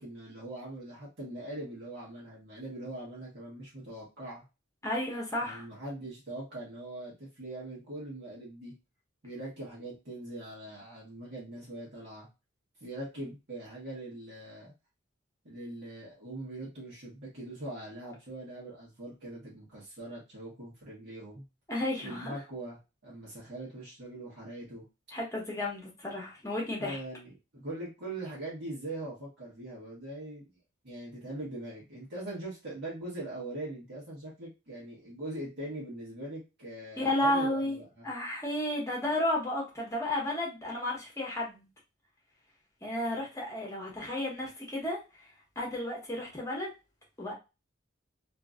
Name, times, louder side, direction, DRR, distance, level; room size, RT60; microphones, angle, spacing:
voice 1, 0.0-4.4 5.4-8.7 9.2-12.3 12.8-14.7 15.4-21.4 22.0-24.8 26.8-30.5 30.8-38.1, right 1 dB, 55° right, 1.1 m, -42 dB
voice 2, 4.8-5.7 21.7-22.3 25.1-27.0 37.0-37.8 38.0-41.7 42.8-45.0 45.6-46.7 47.2-47.3, left 1 dB, 15° left, 1.1 m, -32 dB
3.0 x 2.6 x 2.4 m
head